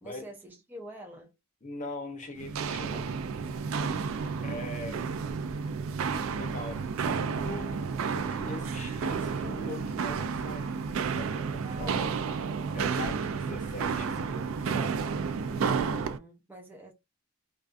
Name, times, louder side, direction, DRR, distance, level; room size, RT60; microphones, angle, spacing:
voice 1, 0.0-1.4 11.6-12.1 15.5-16.9, equal, 10° right, 0.4 m, -46 dB
voice 2, 1.6-3.2 4.4-5.0 6.3-6.8 7.4-10.9 11.1-12.0 12.7-15.0, left 2 dB, 35° left, 0.7 m, -41 dB
Walk footsteps, 2.4-16.2, right 5 dB, 75° right, 0.3 m, -31 dB
2.4 x 2.3 x 2.5 m
head